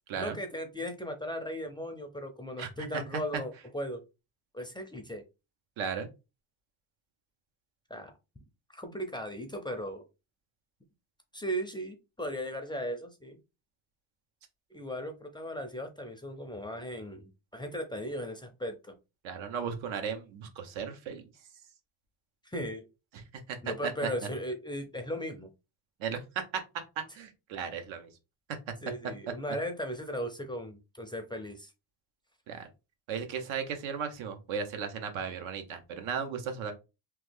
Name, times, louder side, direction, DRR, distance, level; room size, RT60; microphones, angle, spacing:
voice 1, 0.2-4.0 4.5-5.2 7.9-8.1 8.7-10.0 11.3-13.4 14.7-18.9 22.4-22.9 23.6-25.5 28.8-31.7, equal, 10° left, 5 dB, 0.4 m, -37 dB
voice 2, 5.8-6.1 19.2-21.2 23.5-23.6 23.8-23.9 26.0-28.1 32.5-32.7 33.1-36.7, right 6 dB, 80° right, 7 dB, 0.9 m, -36 dB
3.1 x 2.1 x 3.3 m, 0.27 s
cardioid pair, 100°, 47 cm